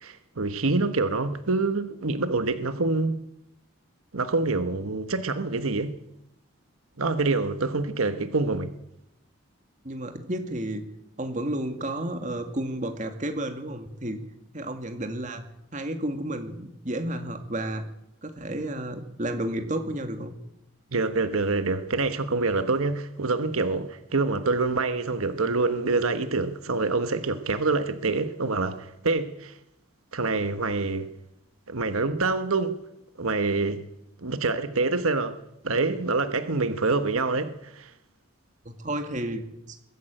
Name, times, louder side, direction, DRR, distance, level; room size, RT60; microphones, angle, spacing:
voice 1, 0.0-3.2 4.1-5.9 7.0-8.7 20.9-29.6 30.1-31.1 31.7-32.8 33.2-33.8 34.2-35.4 35.6-37.9, right 3 dB, 85° right, 1.2 m, -26 dB
voice 2, 9.8-10.9 11.2-14.2 14.5-15.4 15.7-17.9 18.2-20.3 38.7-39.5, right 1 dB, 35° right, 2.2 m, -31 dB
21.5 x 13.0 x 9.1 m
head